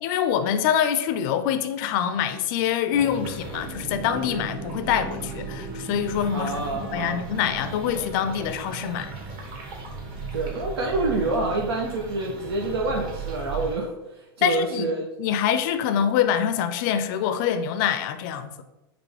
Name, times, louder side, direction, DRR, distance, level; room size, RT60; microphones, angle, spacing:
voice 1, 0.0-6.5 6.9-9.1 14.4-14.9 15.2-18.5, left 9 dB, 55° left, 0.4 m, -25 dB
sound 1, 2.9-13.7, right 3 dB, 40° right, 1.3 m, -36 dB
voice 2, 6.3-7.2 10.3-13.9 14.4-15.1, right 2 dB, 85° right, 0.7 m, -27 dB
5.1 x 3.0 x 3.4 m
hypercardioid pair, 120°, 13 cm